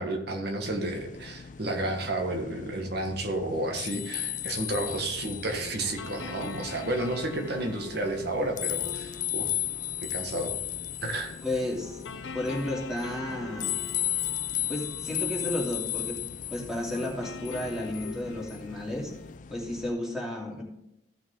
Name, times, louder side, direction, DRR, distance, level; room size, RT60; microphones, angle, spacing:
voice 1, 0.0-9.5 10.0-10.6 11.0-11.3, right 1 dB, 60° right, 4 dB, 1.5 m, -31 dB
sound 1, 0.6-19.9, left 11 dB, 45° left, 0.4 m, -36 dB
sound 2, 4.7-19.4, left 4 dB, 75° left, 0.7 m, -44 dB
voice 2, 11.4-12.0 12.3-13.8 14.7-16.2 16.5-19.1 19.5-20.6, left 1 dB, 5° right, -3 dB, 2.7 m, -32 dB
14.5 x 6.2 x 3.7 m, 0.84 s
head